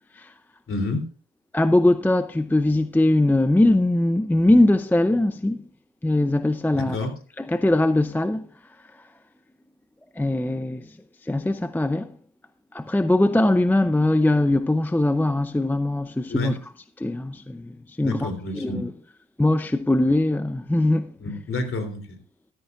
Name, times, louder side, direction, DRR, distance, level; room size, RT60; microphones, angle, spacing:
voice 1, 0.7-1.1 6.7-7.1 16.3-16.5 18.0-18.8 21.2-22.2, left 2 dB, 45° left, 3.3 m, -29 dB
voice 2, 1.5-5.6 6.0-7.0 7.4-9.1 10.1-11.0 11.2-12.1 12.7-16.7 17.0-18.9 19.4-21.1, left 1 dB, 5° left, 0.6 m, -21 dB
13.5 x 13.0 x 2.4 m
cardioid pair, 90°, 30 cm